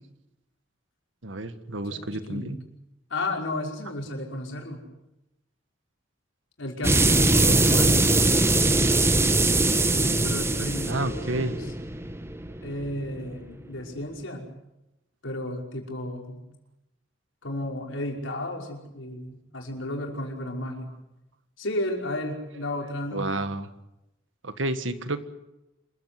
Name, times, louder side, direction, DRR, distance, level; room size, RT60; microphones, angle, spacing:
voice 1, 1.2-2.6 10.9-11.6 23.1-23.7 24.4-25.2, right 2 dB, 75° right, 11 dB, 1.8 m, -30 dB
voice 2, 1.8-2.6 3.1-4.8 6.6-8.1 9.8-11.7 12.6-14.5 15.2-16.4 17.4-20.9 21.6-23.3, left 1 dB, 80° left, 1 dB, 5.5 m, -33 dB
sound 1, 6.8-13.3, right 2 dB, 15° right, 1.2 m, -22 dB
27.0 x 15.5 x 9.7 m, 0.93 s
head